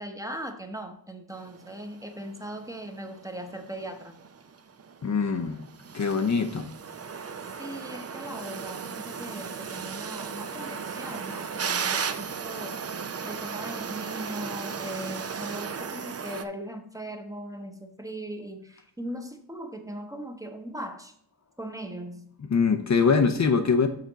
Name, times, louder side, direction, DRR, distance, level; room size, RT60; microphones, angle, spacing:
voice 1, 0.0-4.1 7.6-12.8 13.2-21.1 21.6-22.3, right 1 dB, 10° right, 5 dB, 0.9 m, -39 dB
sound 1, 1.3-16.4, right 6 dB, 40° right, 0.6 m, -36 dB
voice 2, 5.0-5.6 5.9-6.7 22.5-23.9, left 5 dB, 45° left, 7 dB, 0.6 m, -23 dB
6.7 x 5.9 x 3.9 m, 0.67 s
wide cardioid pair, 110°, 39 cm